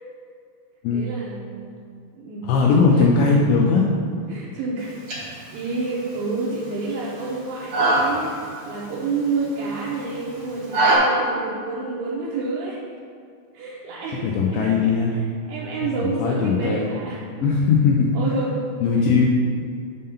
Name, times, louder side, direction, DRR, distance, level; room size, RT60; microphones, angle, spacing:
voice 1, 0.9-1.7 2.1-3.5 4.3-5.0 5.2-8.3 8.7-12.9 13.5-15.2 15.5-17.5 18.1-18.6 19.0-19.1, right 3 dB, 85° right, -5 dB, 2.3 m, -29 dB
voice 2, 2.4-3.9 14.2-15.1 15.8-15.9 16.2-17.0 17.4-18.2 18.8-19.3, left 5 dB, 85° left, -1 dB, 2.5 m, -19 dB
sound 1, 4.8-11.0, right 2 dB, 65° right, 1.2 m, -26 dB
7.5 x 3.7 x 5.5 m, 2.3 s
omnidirectional pair, 5.7 m